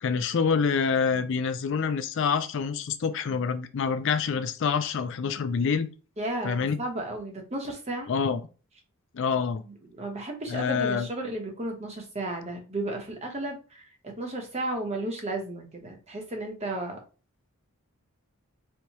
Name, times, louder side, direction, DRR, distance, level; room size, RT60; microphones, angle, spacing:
voice 1, 0.0-5.9 6.4-6.8 8.1-8.4 9.1-9.6 10.5-11.1, left 6 dB, 60° left, 10 dB, 0.4 m, -26 dB
voice 2, 6.2-8.1 9.6-17.0, right 2 dB, 30° right, 2 dB, 0.9 m, -34 dB
4.4 x 2.3 x 2.8 m, 0.35 s
head